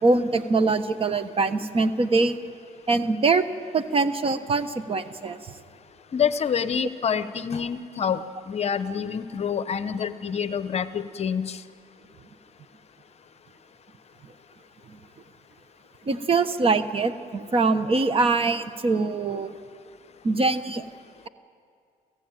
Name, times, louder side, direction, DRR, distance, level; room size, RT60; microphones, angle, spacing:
voice 1, 0.0-2.4 2.9-3.4 3.7-5.5 14.9-15.0 16.1-19.5 20.2-20.8, right 3 dB, 35° right, 12 dB, 1.1 m, -23 dB
voice 2, 6.1-11.6, left 7 dB, 40° left, 13 dB, 0.8 m, -27 dB
27.5 x 15.5 x 9.1 m, 2.4 s
cardioid pair, 110°, 17 cm